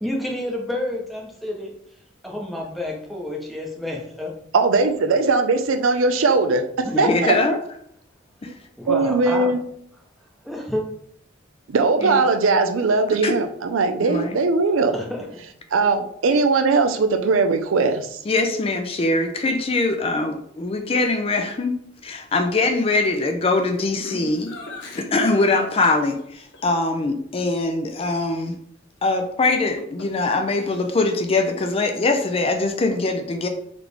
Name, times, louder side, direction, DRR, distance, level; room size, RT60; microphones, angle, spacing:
voice 1, 0.0-1.8 2.2-4.3 6.8-7.3 8.8-9.5 10.4-10.8 14.7-15.3, left 1 dB, ahead, -1 dB, 0.7 m, -29 dB
voice 2, 4.5-6.6 7.0-7.4 8.5-8.6 8.9-9.6 11.7-14.9 15.7-18.2, right 3 dB, 85° right, 7 dB, 0.5 m, -19 dB
voice 3, 6.9-7.6 8.4-8.5 12.0-12.2 13.2-13.3 14.0-14.4 18.3-21.8 22.0-24.5 25.0-28.6 29.0-33.5, left 3 dB, 30° left, 6 dB, 0.4 m, -22 dB
Laughter, 23.9-26.6 29.4-30.2 30.5-31.0, left 2 dB, 60° left, 0.8 m, -38 dB
4.1 x 3.0 x 3.4 m, 0.69 s
head